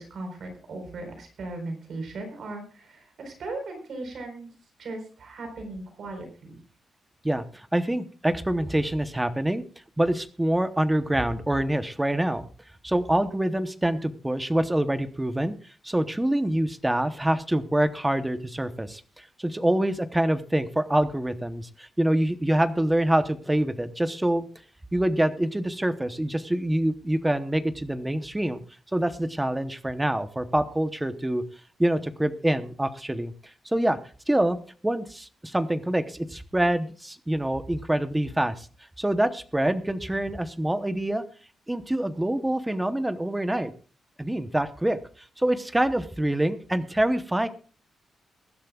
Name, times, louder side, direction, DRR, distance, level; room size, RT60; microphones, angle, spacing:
voice 1, 0.0-4.5 4.8-6.6, right 2 dB, 55° right, 4 dB, 4.2 m, -37 dB
voice 2, 7.2-9.6 10.0-12.5 12.8-15.5 15.8-24.5 24.9-28.6 28.9-31.4 31.8-33.3 33.6-34.0 34.3-34.6 34.8-38.7 39.0-41.2 41.7-43.7 44.2-45.0 45.4-47.5, right 1 dB, 5° right, 11 dB, 0.9 m, -25 dB
22.5 x 11.5 x 2.4 m, 0.39 s
wide cardioid pair, 175°, 0 cm